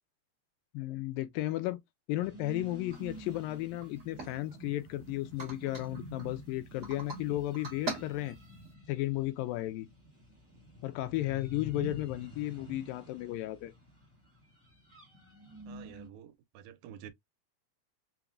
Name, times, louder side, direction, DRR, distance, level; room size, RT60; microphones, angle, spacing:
voice 1, 0.7-1.8 2.1-8.4 8.9-9.9 10.8-13.7, left 16 dB, 80° left, 2.2 m, -34 dB
sound 1, 2.2-16.1, equal, 10° right, 0.6 m, -49 dB
sound 2, 2.9-3.0 3.3-3.4 3.8-4.9 5.4-6.3 6.8-7.2 7.5-8.7, right 3 dB, 65° right, 0.7 m, -42 dB
voice 2, 15.7-17.1, right 10 dB, 85° right, 2.3 m, -49 dB
5.8 x 2.1 x 2.4 m
omnidirectional pair, 4.1 m